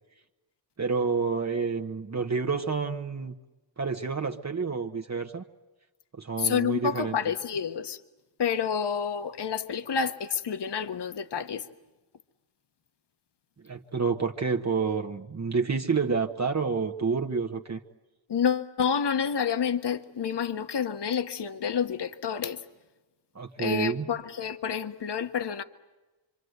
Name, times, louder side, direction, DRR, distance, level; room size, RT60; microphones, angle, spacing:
voice 1, 0.8-3.3 3.8-5.4 6.1-7.1 13.6-17.8 23.3-24.1, right 5 dB, 35° right, 1.3 m, -29 dB
voice 2, 6.4-8.0 8.4-11.6 18.3-22.6 23.6-25.6, left 7 dB, 60° left, 1.3 m, -29 dB
26.0 x 26.0 x 8.1 m
wide cardioid pair, 110°, 47 cm